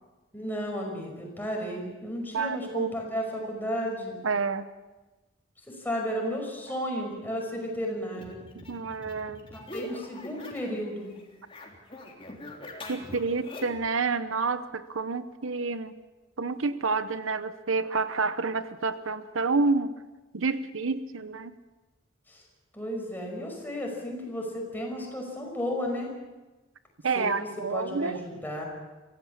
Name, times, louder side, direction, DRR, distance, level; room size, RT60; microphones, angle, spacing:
voice 1, 0.3-4.2 5.7-8.4 9.5-11.1 22.3-22.4 22.7-26.1 27.2-28.6, equal, 10° left, 0 dB, 5.6 m, -33 dB
voice 2, 2.3-2.9 4.2-4.7 8.5-9.4 12.9-15.9 16.4-19.9 20.3-21.5 27.0-28.2, right 4 dB, 80° right, 12 dB, 0.9 m, -29 dB
sound 1, 8.1-10.8 11.1-13.9, left 1 dB, 25° left, 3.5 m, -43 dB
24.5 x 16.0 x 7.3 m, 1.2 s
head